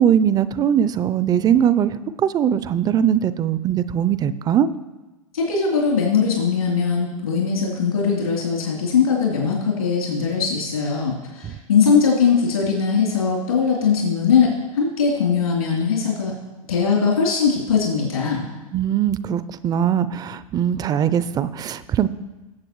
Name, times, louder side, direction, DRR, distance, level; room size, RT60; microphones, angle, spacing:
voice 1, 0.0-4.7 11.4-11.5 18.7-22.1, right 9 dB, 20° right, 16 dB, 0.4 m, -20 dB
voice 2, 5.3-16.3 16.7-18.5, left 6 dB, 80° left, -4 dB, 3.3 m, -20 dB
19.5 x 7.6 x 3.1 m, 1.1 s
hypercardioid pair, 100°, 18 cm